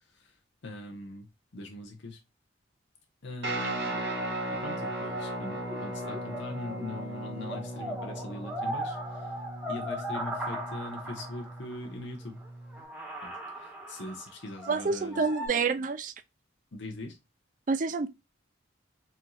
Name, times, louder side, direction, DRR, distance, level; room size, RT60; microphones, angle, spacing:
voice 1, 0.6-1.3 1.5-2.2 3.2-4.0 4.6-9.0 9.7-12.4 13.2-13.3 13.9-15.2 16.7-17.2, left 2 dB, 70° left, 0.9 m, -41 dB
Guitar, 3.4-12.8, right 1 dB, 75° right, 2.0 m, -37 dB
sound 1, 3.5-7.1 7.4-11.9 12.4-12.5 12.7-15.5, right 1 dB, 5° right, 0.8 m, -39 dB
voice 2, 14.7-16.1 17.7-18.1, right 4 dB, 40° right, 0.4 m, -28 dB
4.4 x 2.6 x 2.3 m
head